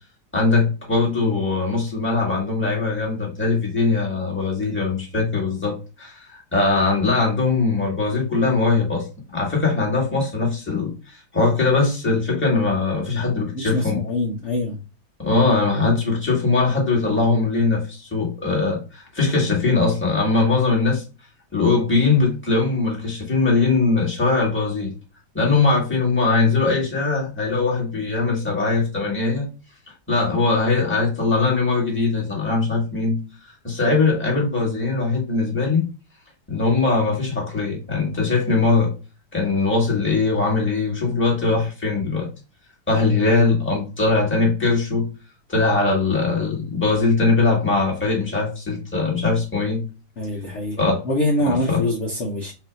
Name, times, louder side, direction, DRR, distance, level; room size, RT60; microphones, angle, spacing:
voice 1, 0.3-14.0 15.2-21.0 21.5-24.9 25.3-29.5 30.1-35.9 36.5-38.9 39.3-42.3 42.9-45.1 45.5-49.8 50.8-51.0 51.7-51.8, left 3 dB, 5° left, -3 dB, 1.4 m, -21 dB
voice 2, 13.5-14.8 50.2-50.8 51.0-52.5, left 1 dB, 50° left, -1 dB, 0.9 m, -24 dB
5.8 x 2.7 x 2.4 m, 0.32 s
omnidirectional pair, 2.1 m